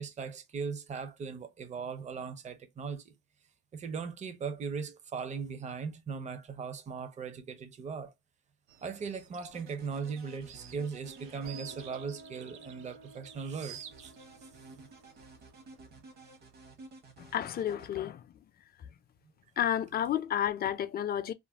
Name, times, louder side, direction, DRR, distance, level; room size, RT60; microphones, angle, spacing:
voice 1, 0.0-3.1 3.7-8.1 8.8-14.1 14.7-14.9, right 5 dB, 35° right, 0.6 m, -39 dB
sound 1, 8.7-17.1, right 8 dB, 85° right, 0.6 m, -53 dB
sound 2, 9.5-11.9 13.9-17.9, right 3 dB, 55° right, 1.0 m, -53 dB
sound 3, 11.0-16.4, right 2 dB, 70° right, 1.1 m, -54 dB
voice 2, 17.2-18.4 18.8-18.9 19.6-21.3, left 10 dB, 50° left, 0.4 m, -31 dB
2.5 x 2.1 x 3.2 m
cardioid pair, 90°, 20 cm